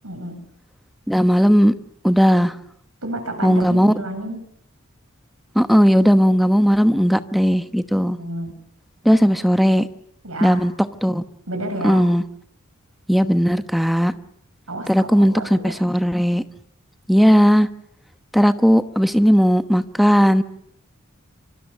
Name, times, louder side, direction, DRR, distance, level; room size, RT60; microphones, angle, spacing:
voice 1, 0.0-0.4 3.0-4.4 8.1-8.5 10.2-10.6 11.5-12.0 14.7-15.7, right 1 dB, 90° right, 6 dB, 7.3 m, -30 dB
voice 2, 1.1-1.7 2.0-2.5 3.4-3.9 5.5-8.2 9.0-9.9 10.4-10.7 11.0-11.2 11.8-12.2 13.1-14.1 14.9-16.4 17.1-17.7 18.3-20.4, equal, ahead, 10 dB, 1.0 m, -16 dB
25.5 x 25.0 x 7.2 m, 0.74 s
head